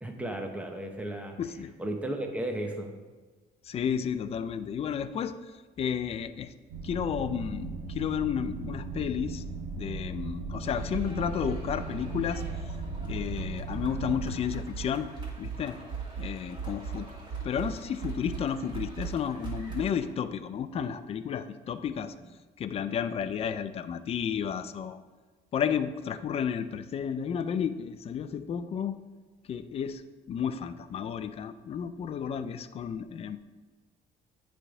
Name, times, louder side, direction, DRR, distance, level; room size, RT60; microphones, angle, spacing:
voice 1, 0.0-1.4 1.8-2.9 20.8-20.9 22.2-22.3, right 1 dB, 10° right, 3 dB, 0.9 m, -35 dB
voice 2, 1.4-1.7 3.6-5.5 5.8-6.5 6.8-9.4 9.8-12.4 13.0-15.1 15.4-15.8 16.2-17.1 17.4-22.1 22.6-25.0 25.5-29.0 29.5-30.0 30.3-33.4, left 8 dB, 35° left, 12 dB, 0.4 m, -32 dB
sound 1, 6.7-14.4, right 3 dB, 85° right, 1.1 m, -38 dB
sound 2, 10.6-20.1, right 5 dB, 25° right, 2.2 m, -39 dB
8.4 x 3.4 x 4.8 m, 1.3 s
cardioid pair, 110°, 17 cm